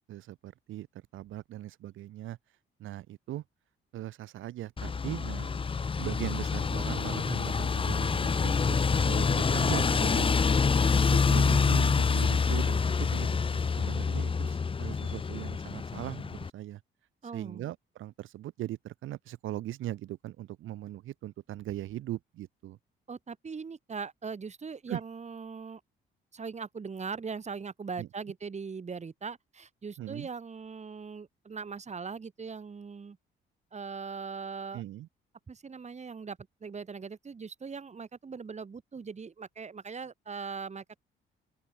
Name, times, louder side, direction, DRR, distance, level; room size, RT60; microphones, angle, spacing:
voice 1, 0.1-0.9 1.1-2.4 2.8-3.4 3.9-5.5 6.0-10.3 11.0-13.4 13.8-16.8 17.3-22.8 24.9-25.0 28.0-28.1 30.0-30.3 34.7-35.1, right 14 dB, 85° right, 3.7 m, -39 dB
sound 1, 4.8-16.5, left 5 dB, 25° left, 0.7 m, -27 dB
voice 2, 17.2-17.7 23.1-25.8 26.3-33.2 33.7-34.8 35.5-41.0, right 5 dB, 35° right, 3.8 m, -40 dB
open air
cardioid pair, 90°, 20 cm